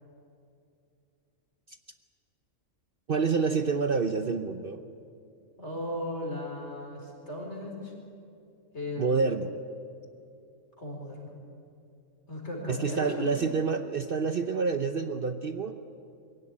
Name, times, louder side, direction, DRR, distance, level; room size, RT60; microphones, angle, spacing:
voice 1, 3.1-4.8 9.0-9.5 12.7-15.8, right 4 dB, 50° right, 8 dB, 0.9 m, -28 dB
voice 2, 5.6-7.9 8.7-9.1 10.8-11.3 12.3-13.3, left 1 dB, 55° left, 0 dB, 4.9 m, -36 dB
22.5 x 16.5 x 9.9 m, 2.6 s
omnidirectional pair, 1.4 m